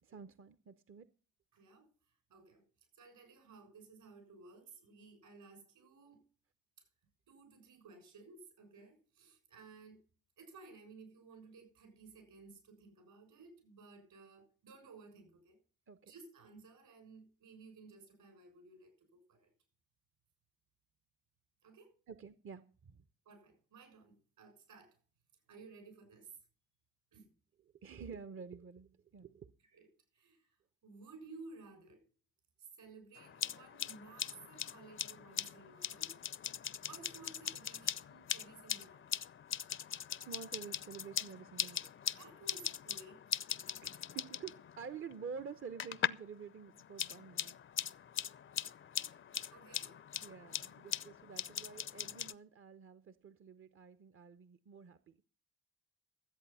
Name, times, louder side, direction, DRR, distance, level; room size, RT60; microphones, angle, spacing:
voice 1, 0.0-1.1 15.9-16.1 22.1-23.0 27.8-29.5 40.2-41.9 43.8-47.5 50.2-55.2, right 6 dB, 40° right, 0.7 m, -49 dB
voice 2, 1.5-1.9 2.3-2.6 2.9-6.2 6.8-6.9 7.3-10.0 10.4-15.6 16.0-19.5 21.6-21.9 23.2-25.0 25.5-26.4 27.1-27.3 29.6-29.9 30.1-30.5 30.8-32.0 32.6-36.1 36.5-39.0 42.2-43.3 49.5-50.0, right 4 dB, 70° right, 6.7 m, -56 dB
sound 1, 33.2-46.3 46.6-52.3, left 8 dB, 35° left, 0.6 m, -41 dB
13.5 x 8.1 x 5.5 m
hypercardioid pair, 50°, 35 cm